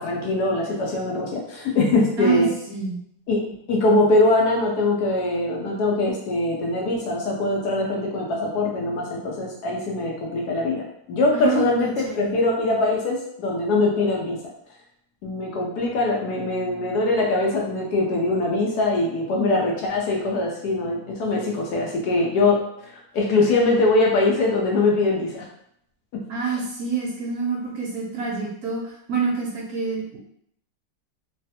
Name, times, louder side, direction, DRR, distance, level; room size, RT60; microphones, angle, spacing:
voice 1, 0.0-2.5 3.3-14.4 15.2-22.6 23.1-25.4, left 2 dB, 70° left, -1 dB, 1.1 m, -22 dB
voice 2, 2.2-3.0 11.3-11.7 12.0-12.3 26.3-30.2, right 5 dB, 65° right, -2 dB, 1.0 m, -27 dB
3.2 x 2.3 x 2.7 m, 0.71 s
omnidirectional pair, 1.9 m